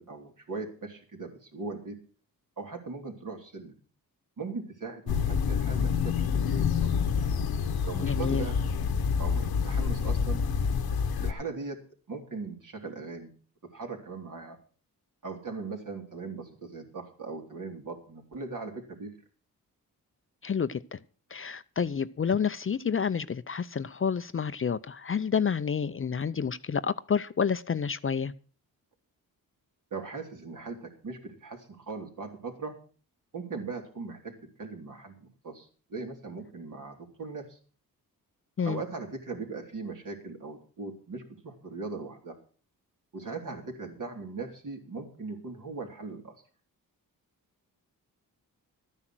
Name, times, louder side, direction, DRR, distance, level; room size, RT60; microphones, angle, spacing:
voice 1, 0.0-2.0 2.6-3.7 4.4-6.9 7.8-8.6 9.2-10.4 11.2-11.8 12.1-13.3 13.7-14.6 15.2-19.1 29.9-32.8 33.3-37.6 38.6-42.4 43.1-46.4, right 4 dB, 60° right, 3.7 m, -39 dB
sound 1, 5.1-11.3, left 6 dB, 85° left, 1.2 m, -27 dB
voice 2, 8.0-8.5 20.4-21.0 21.3-28.3 38.6-38.8, left 6 dB, 35° left, 0.6 m, -29 dB
12.5 x 9.9 x 6.2 m
cardioid pair, 80°, 36 cm